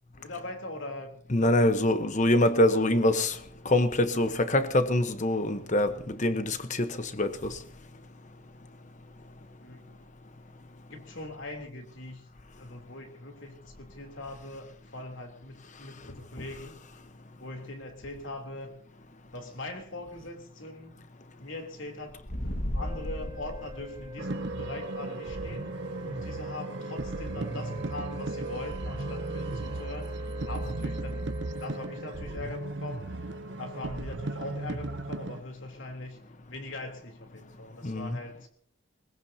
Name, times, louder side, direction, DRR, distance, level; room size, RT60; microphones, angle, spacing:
voice 1, 0.2-1.1 1.4-1.7 9.6-9.8 10.9-12.2 12.6-16.7 17.4-18.8 19.3-20.9 21.4-25.7 26.0-33.0 33.6-36.2 36.5-38.5, left 2 dB, 70° left, 3.4 m, -41 dB
voice 2, 1.3-3.4 3.6-7.6 37.8-38.2, left 1 dB, 35° left, 1.1 m, -25 dB
sound 1, 22.1-24.6, equal, 55° left, 1.9 m, -35 dB
sound 2, 22.7-32.4, left 2 dB, 15° right, 0.7 m, -46 dB
sound 3, 24.2-35.4, right 2 dB, 60° right, 0.8 m, -35 dB
21.0 x 20.5 x 2.9 m
head